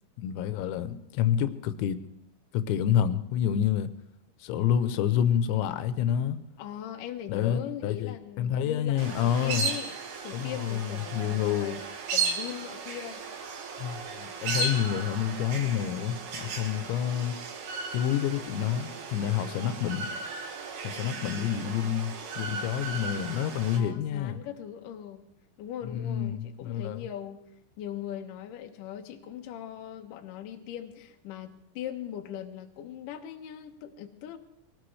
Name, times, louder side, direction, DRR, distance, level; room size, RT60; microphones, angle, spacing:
voice 1, 0.2-2.0 2.5-3.9 4.4-6.4 7.3-9.7 10.3-11.8 13.8-17.4 17.9-20.1 20.8-24.4 25.9-27.0, left 9 dB, 90° left, 3.1 m, -28 dB
voice 2, 6.6-10.0 10.2-11.8 12.1-13.2 19.5-19.8 21.1-21.6 23.7-25.2 25.6-27.4 27.8-34.4, left 10 dB, 70° left, 2.2 m, -40 dB
sound 1, 9.0-23.8, right 4 dB, 65° right, 3.4 m, -36 dB
22.5 x 18.0 x 3.3 m
omnidirectional pair, 5.1 m